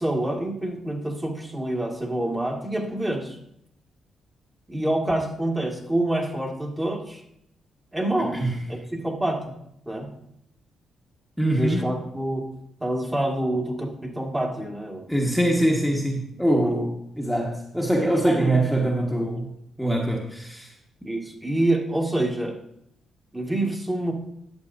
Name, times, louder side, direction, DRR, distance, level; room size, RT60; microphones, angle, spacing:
voice 1, 0.0-3.4 4.7-7.2 7.9-8.4 8.7-9.5 9.9-10.1 11.5-12.5 12.8-15.1 16.6-16.7 18.2-18.6 19.2-19.3 21.0-22.6 23.3-24.1, right 1 dB, 15° right, 0 dB, 1.9 m, -27 dB
voice 2, 11.4-11.9 15.1-19.5 19.8-20.7, right 1 dB, ahead, -2 dB, 1.5 m, -23 dB
11.5 x 7.5 x 2.7 m, 0.75 s
supercardioid pair, 55°, 0 cm